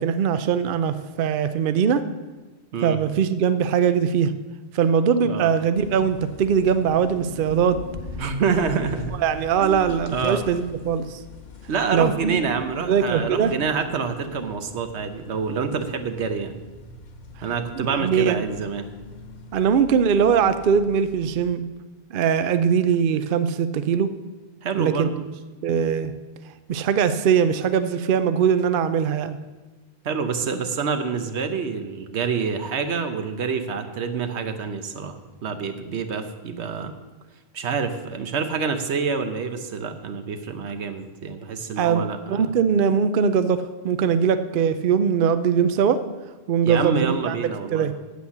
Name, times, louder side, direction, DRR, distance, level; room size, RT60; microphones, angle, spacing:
voice 1, 0.0-2.0 2.8-4.3 4.7-7.8 9.2-11.2 11.9-12.4 12.8-13.5 17.8-18.4 19.5-21.7 22.1-24.1 24.8-25.1 25.6-26.1 26.7-29.4 41.8-42.0 42.3-46.0 46.5-47.3 47.7-47.9, right 7 dB, 60° right, 11 dB, 0.7 m, -21 dB
sound 1, 5.7-21.5, left 4 dB, 45° left, 0.9 m, -42 dB
voice 2, 8.2-9.2 9.6-10.4 11.7-16.6 17.4-18.9 24.6-25.1 30.0-36.9 37.5-42.5 46.6-48.0, right 5 dB, 85° right, 8 dB, 1.2 m, -27 dB
8.3 x 8.0 x 7.1 m, 1.2 s
omnidirectional pair, 1.1 m